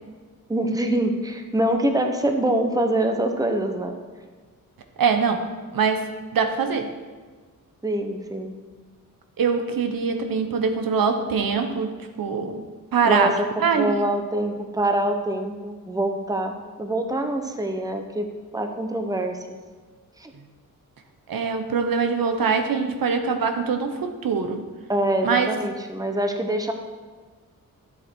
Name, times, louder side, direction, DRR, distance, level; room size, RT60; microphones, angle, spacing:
voice 1, 0.5-4.0 7.8-8.5 13.0-13.5 13.7-18.3 18.5-19.6 20.2-20.3 24.9-26.7, right 1 dB, 10° right, 5 dB, 0.9 m, -25 dB
voice 2, 5.0-6.0 6.3-6.9 9.4-11.9 12.2-12.6 12.9-13.9 21.3-24.6 25.2-25.5, right 5 dB, 85° right, 6 dB, 1.2 m, -23 dB
12.5 x 8.0 x 4.6 m, 1.5 s
wide cardioid pair, 150°, 34 cm